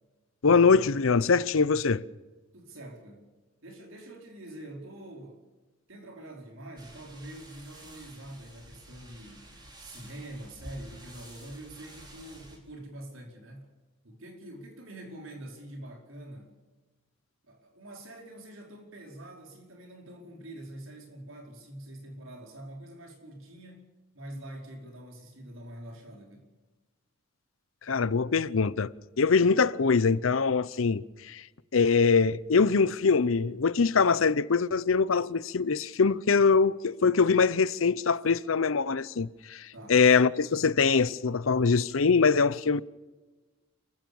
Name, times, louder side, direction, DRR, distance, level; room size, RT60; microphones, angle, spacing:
voice 1, 0.4-2.0 27.9-28.9 29.2-31.4 31.7-42.8, left 5 dB, 90° left, 0.7 m, -23 dB
voice 2, 2.5-3.3 3.6-5.4 5.9-13.7 14.0-16.6 17.4-23.9 24.1-26.5 39.7-40.0, right 1 dB, 80° right, 5.0 m, -45 dB
sound 1, 6.8-12.6, right 1 dB, 20° right, 4.3 m, -50 dB
27.5 x 15.5 x 7.1 m
head